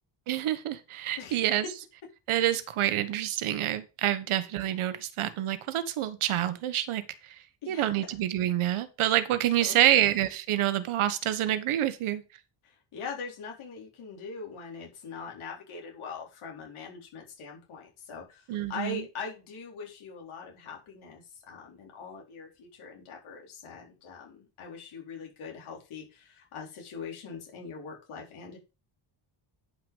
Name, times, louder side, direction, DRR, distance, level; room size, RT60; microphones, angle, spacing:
voice 1, 0.3-1.6 2.3-7.4 7.7-12.2 18.5-19.0, right 12 dB, 80° right, 13 dB, 1.3 m, -27 dB
voice 2, 12.6-28.6, left 5 dB, 80° left, 0 dB, 4.5 m, -42 dB
10.0 x 6.1 x 5.4 m, 0.31 s
cardioid pair, 175°, 49 cm